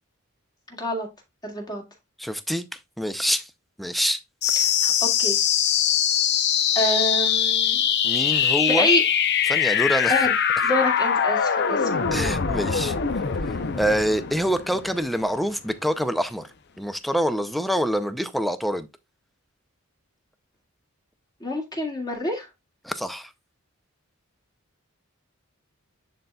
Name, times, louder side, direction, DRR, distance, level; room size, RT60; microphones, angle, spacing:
voice 1, 1.4-1.8 4.8-5.3 6.8-7.8 8.3-9.0 10.1-10.3 10.6-11.9 21.4-22.5, left 1 dB, 20° left, 2.0 m, -26 dB
voice 2, 2.2-3.5 3.8-4.2 8.0-8.9 9.5-10.2 12.1-12.9 13.5-18.9 22.8-23.3, equal, ahead, 0.5 m, -26 dB
sound 1, 4.4-15.4, left 8 dB, 50° left, 0.7 m, -23 dB
11.0 x 3.9 x 2.3 m
head